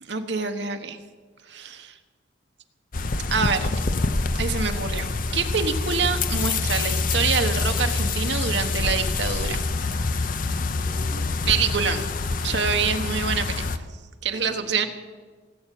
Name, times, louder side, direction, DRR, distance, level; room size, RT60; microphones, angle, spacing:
voice 1, 0.0-1.0 1.5-1.9 3.3-3.8 4.4-9.6 11.5-12.1 12.4-13.7 14.2-14.9, right 5 dB, 60° right, 6 dB, 1.3 m, -26 dB
sound 1, 2.9-13.8, left 3 dB, 45° left, 0.7 m, -26 dB
voice 2, 10.8-11.3 14.3-14.9, equal, 10° right, -4 dB, 5.0 m, -43 dB
18.0 x 8.0 x 9.2 m, 1.4 s
head